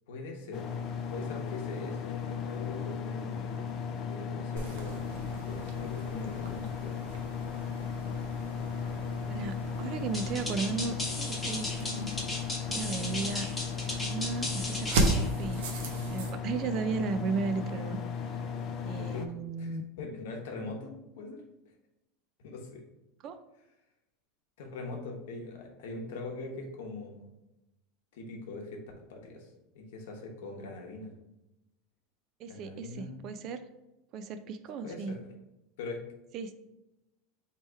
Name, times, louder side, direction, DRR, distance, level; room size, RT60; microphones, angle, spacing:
voice 1, 0.1-0.7 1.1-3.6 4.0-6.9 8.8-9.4 19.0-19.3 19.6-21.4 22.4-22.8 24.6-27.2 28.1-28.8 29.1-31.1 32.5-33.2 34.8-35.2 35.8-36.0, left 3 dB, 80° left, 1 dB, 0.9 m, -42 dB
sound 1, 0.5-19.3, left 6 dB, 40° left, 0.4 m, -36 dB
sound 2, 4.6-16.3, right 2 dB, 85° right, 0.7 m, -37 dB
voice 2, 9.3-12.1 12.7-13.5 13.7-15.6 16.1-18.0 18.9-19.8 23.2-23.4 32.4-33.6 34.1-35.2 36.3-36.5, right 4 dB, 45° right, 10 dB, 0.4 m, -35 dB
sound 3, 10.1-15.3, left 1 dB, 10° left, 1.0 m, -36 dB
3.3 x 2.9 x 4.5 m, 0.93 s
supercardioid pair, 135°, 0 cm